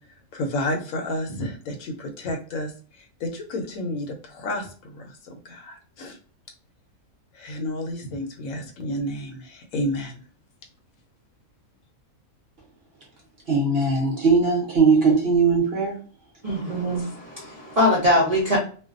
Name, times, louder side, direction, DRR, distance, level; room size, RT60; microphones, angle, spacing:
voice 1, 0.3-6.2 7.3-10.2, left 1 dB, 70° left, 4 dB, 0.9 m, -31 dB
voice 2, 13.5-16.0, right 4 dB, 50° right, -1 dB, 0.8 m, -19 dB
voice 3, 16.4-18.6, left 1 dB, 85° right, -5 dB, 0.3 m, -22 dB
2.5 x 2.1 x 2.4 m, 0.40 s
omnidirectional pair, 1.6 m